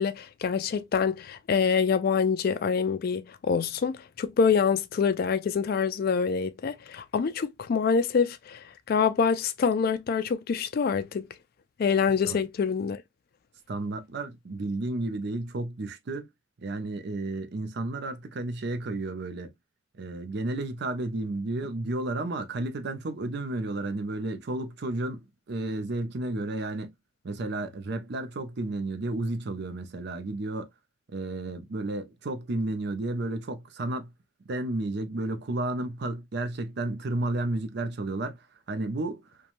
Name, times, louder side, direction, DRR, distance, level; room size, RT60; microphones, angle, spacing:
voice 1, 0.0-11.3 11.8-13.0, left 6 dB, 50° left, 0.3 m, -26 dB
voice 2, 13.7-16.3 16.6-19.5 20.0-26.9 27.2-30.7 31.1-34.1 34.4-39.2, right 2 dB, 55° right, 0.5 m, -32 dB
3.0 x 2.2 x 2.5 m
head